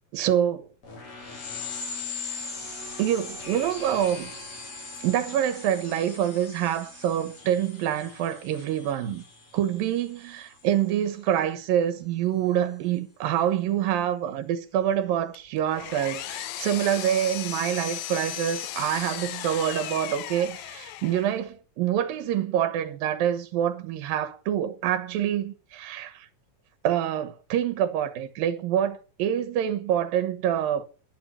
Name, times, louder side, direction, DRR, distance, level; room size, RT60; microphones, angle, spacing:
voice 1, 0.1-0.7 3.0-4.3 5.0-9.2 9.5-26.3 26.8-30.9, right 10 dB, 85° right, 3.1 m, -26 dB
sound 1, 0.8-11.0, left 4 dB, 50° left, 5.0 m, -40 dB
Power tool, 15.3-21.4, left 13 dB, 75° left, 1.8 m, -36 dB
12.0 x 10.5 x 6.8 m
omnidirectional pair, 3.9 m